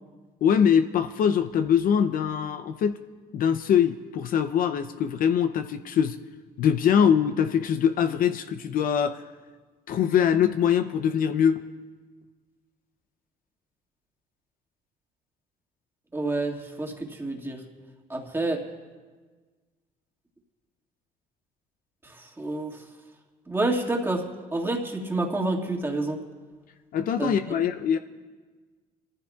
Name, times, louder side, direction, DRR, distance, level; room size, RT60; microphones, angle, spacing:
voice 1, 0.4-3.0 3.3-6.2 6.6-9.2 9.9-11.6 26.9-28.0, left 8 dB, 55° left, 9 dB, 0.6 m, -23 dB
voice 2, 16.1-17.6 18.1-18.6 22.0-22.8 23.5-24.2 24.5-26.2 27.2-27.3, right 2 dB, 15° right, 0 dB, 1.9 m, -28 dB
26.0 x 14.5 x 2.4 m, 1.4 s
cardioid pair, 110°, 17 cm